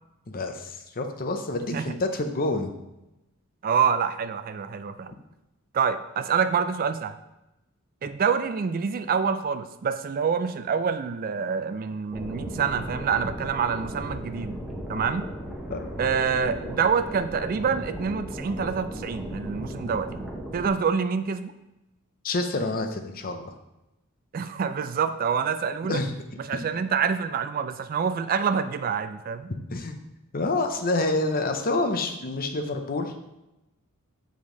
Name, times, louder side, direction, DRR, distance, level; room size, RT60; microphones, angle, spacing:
voice 1, 0.3-2.7 15.7-15.8 22.2-23.5 25.9-26.1 29.7-30.0 30.3-33.1, left 2 dB, 40° left, 6 dB, 0.7 m, -27 dB
voice 2, 3.6-5.1 5.7-7.1 8.0-14.6 14.9-15.3 16.0-20.3 20.5-21.5 24.3-26.0 26.4-29.5, right 6 dB, 40° right, 11 dB, 0.3 m, -26 dB
sound 1, 12.1-20.7, right 1 dB, ahead, 1.0 m, -36 dB
7.2 x 5.1 x 3.8 m, 0.94 s
head